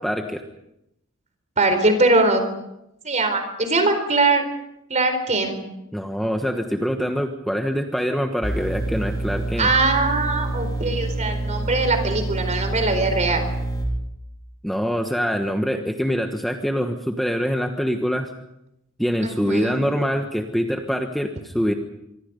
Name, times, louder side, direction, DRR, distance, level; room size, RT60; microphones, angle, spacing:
voice 1, 0.0-0.4 5.9-9.7 14.6-18.3 19.0-21.7, equal, ahead, 4 dB, 1.3 m, -24 dB
voice 2, 1.6-2.4 3.0-4.4 4.9-5.6 9.6-13.5 19.2-19.8, right 3 dB, 35° right, 7 dB, 4.3 m, -21 dB
sound 1, 8.4-13.9, right 1 dB, 20° left, 4.5 m, -27 dB
25.5 x 24.0 x 5.4 m, 0.84 s
head